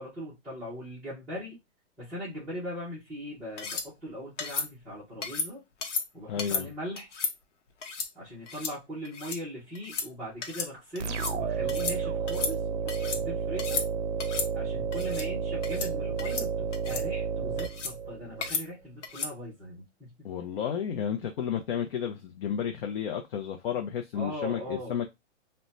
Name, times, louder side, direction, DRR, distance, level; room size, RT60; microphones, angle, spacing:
voice 1, 0.0-1.6 2.0-5.6 6.1-7.1 8.1-13.8 14.5-20.3 24.1-25.0, equal, 5° right, 0.4 m, -40 dB
sound 1, 3.6-3.9 4.4-4.7 5.2-5.5 5.8-6.0 6.4-6.6 7.0-7.3 7.8-8.1 8.5-8.7 9.0-9.4 9.7-10.1 10.4-10.7 10.9-11.4 11.7-12.0 12.3-13.2 13.6-13.9 14.2-14.5 14.9-15.3 15.6-15.9 16.2-16.5 16.7-17.0 17.6-17.9 18.4-18.6 19.0-19.3, left 5 dB, 75° left, 0.8 m, -33 dB
voice 2, 6.3-6.7 20.2-25.1, left 8 dB, 55° left, 0.5 m, -32 dB
sound 2, 11.0-18.5, right 6 dB, 75° right, 0.5 m, -31 dB
2.1 x 2.1 x 3.7 m
hypercardioid pair, 150°, 36 cm